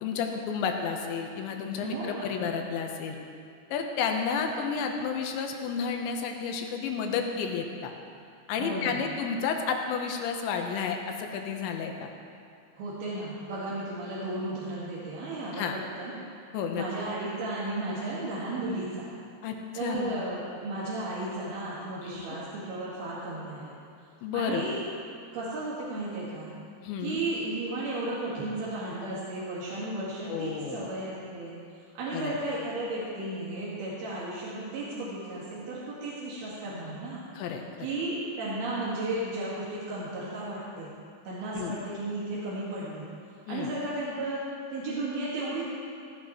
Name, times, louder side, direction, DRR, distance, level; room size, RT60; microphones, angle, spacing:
voice 1, 0.0-3.2 3.7-7.9 8.5-12.1 15.5-15.7 16.5-16.8 19.4-20.3 22.0-22.4 24.2-24.6 26.8-27.2 30.3-30.9 32.1-32.4 37.3-37.6 41.5-41.8 43.5-43.7, left 6 dB, 90° left, 3 dB, 3.2 m, -31 dB
voice 2, 1.8-2.3 8.6-9.0 12.8-15.7 16.0-16.1 16.7-19.1 19.8-23.8 24.3-24.8 25.3-26.5 27.0-31.6 32.0-37.2 37.8-40.9 41.3-43.1 43.5-44.4 44.7-45.7, right 2 dB, 65° right, -9 dB, 3.6 m, -34 dB
16.5 x 15.0 x 3.1 m, 2.4 s
omnidirectional pair, 5.2 m